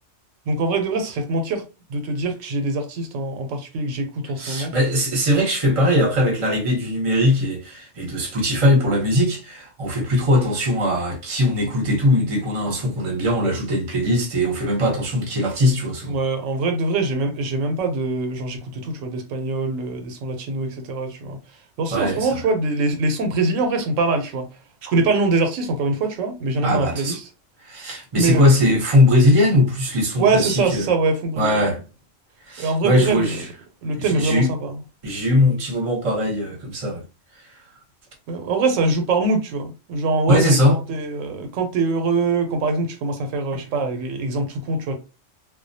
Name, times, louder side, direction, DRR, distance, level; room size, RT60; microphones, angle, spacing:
voice 1, 0.5-1.6 1.9-4.7 16.1-21.4 21.8-24.5 24.8-27.2 28.1-28.5 30.2-31.7 32.6-33.4 33.8-34.7 38.3-44.9, right 3 dB, 85° right, 0.9 m, -23 dB
voice 2, 4.4-16.2 21.9-22.4 26.6-27.2 27.6-30.9 31.4-31.8 32.5-33.5 34.0-34.5 35.0-37.0 40.3-40.8, left 1 dB, 30° right, 0.7 m, -20 dB
2.3 x 2.1 x 2.6 m
omnidirectional pair, 1.3 m